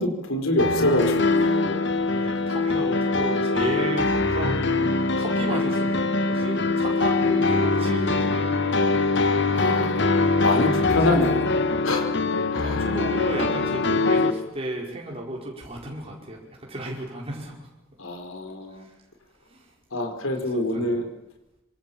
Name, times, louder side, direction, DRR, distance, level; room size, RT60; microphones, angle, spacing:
voice 1, 0.0-1.8 9.5-10.1 10.4-12.1 12.5-12.8 18.0-18.8 19.9-21.1, left 1 dB, 80° left, 5 dB, 4.9 m, -26 dB
sound 1, 0.6-14.3, left 3 dB, 60° left, 1.7 m, -23 dB
voice 2, 2.1-8.5 11.1-11.2 12.6-17.7 18.7-19.0 19.5-19.7 20.7-20.9, right 1 dB, 30° right, -1 dB, 5.2 m, -34 dB
26.0 x 26.0 x 7.3 m, 0.91 s
head